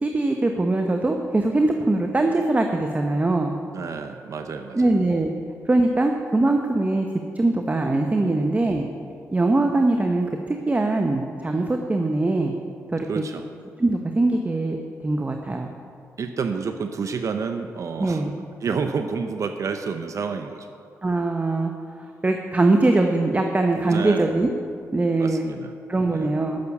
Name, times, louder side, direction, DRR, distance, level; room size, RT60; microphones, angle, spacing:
voice 1, 0.0-3.5 4.7-5.3 5.6-7.1 7.3-8.9 9.3-12.5 12.9-13.2 13.8-14.8 15.0-15.7 18.0-18.3 21.0-24.5 24.9-25.5 25.9-26.6, right 2 dB, 25° right, 4 dB, 0.9 m, -22 dB
voice 2, 3.7-4.9 8.2-8.5 13.1-13.4 16.2-18.2 18.6-20.7 23.9-24.3 25.2-25.7 26.1-26.3, right 5 dB, 60° right, 6 dB, 0.7 m, -29 dB
11.5 x 6.9 x 8.3 m, 2.3 s
cardioid pair, 70°, 6 cm